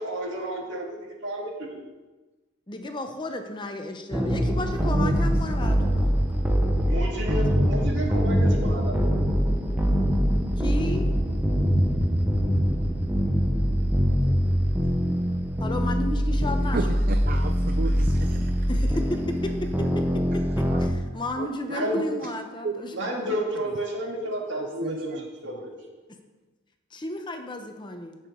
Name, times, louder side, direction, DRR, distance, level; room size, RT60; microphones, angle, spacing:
voice 1, 0.0-1.8 6.9-9.1 21.7-22.0 22.9-25.1 25.4-25.8, right 1 dB, 60° right, -1 dB, 2.2 m, -31 dB
voice 2, 2.7-6.5 10.6-11.1 15.6-16.8 18.7-23.2 26.9-28.2, left 1 dB, 20° left, 5 dB, 0.8 m, -33 dB
sound 1, 4.1-20.9, equal, 10° right, 0.8 m, -23 dB
voice 3, 4.7-5.3 5.6-5.7 16.7-18.6 20.7-20.8 21.4-21.5 22.6-23.8 24.6-25.6, right 3 dB, 45° right, 6 dB, 0.5 m, -35 dB
16.0 x 6.7 x 3.8 m, 1.2 s
head